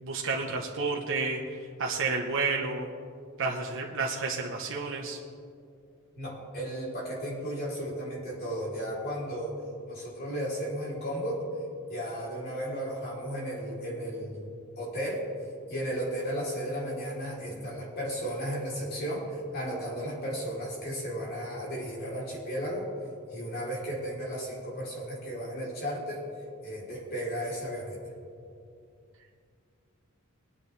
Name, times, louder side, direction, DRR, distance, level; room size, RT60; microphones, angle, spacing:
voice 1, 0.0-2.9 3.4-5.2, right 4 dB, 60° right, -2 dB, 1.1 m, -31 dB
voice 2, 6.1-11.4 11.9-14.5 14.8-15.2 15.7-22.9 23.3-26.2 26.6-28.0, equal, 50° left, -5 dB, 3.6 m, -34 dB
21.5 x 9.8 x 3.4 m, 2.4 s
head